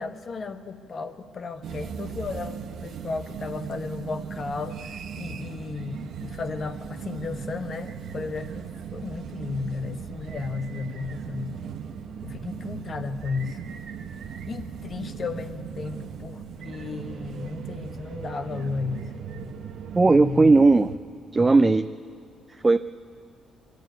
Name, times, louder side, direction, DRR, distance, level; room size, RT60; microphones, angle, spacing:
voice 1, 0.0-11.6 12.2-13.6 14.5-19.5 20.1-20.6, left 4 dB, 45° left, 8 dB, 1.2 m, -34 dB
sound 1, 1.6-21.0, right 7 dB, 70° right, 1.0 m, -38 dB
voice 2, 19.9-20.9 21.3-21.9 22.6-22.8, right 3 dB, 25° right, 9 dB, 0.4 m, -17 dB
22.5 x 13.0 x 9.3 m, 2.3 s
cardioid pair, 90°, 0 cm